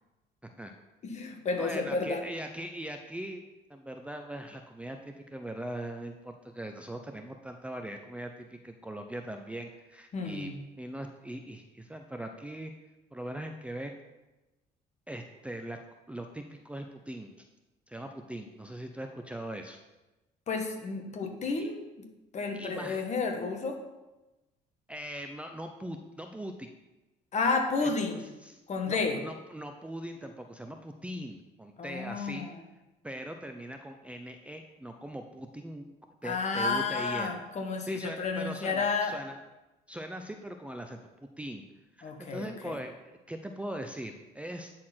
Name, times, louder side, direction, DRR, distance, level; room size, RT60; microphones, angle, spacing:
voice 1, 1.0-2.2 10.1-10.6 20.5-21.9 22.3-23.8 27.3-28.2 28.7-29.2 31.8-32.5 36.2-39.2 42.0-42.7, left 4 dB, 45° left, 3 dB, 1.4 m, -31 dB
voice 2, 1.6-3.4 3.7-12.7 13.1-13.9 15.1-15.8 16.1-17.5 17.9-19.8 21.6-21.7 22.5-23.1 24.9-26.7 27.8-27.9 28.4-32.5 33.0-35.9 36.2-37.3 37.9-39.4 39.9-41.6 42.0-44.7, right 1 dB, 5° right, 5 dB, 0.5 m, -41 dB
9.4 x 4.3 x 5.8 m, 1.0 s
cardioid pair, 110°, 17 cm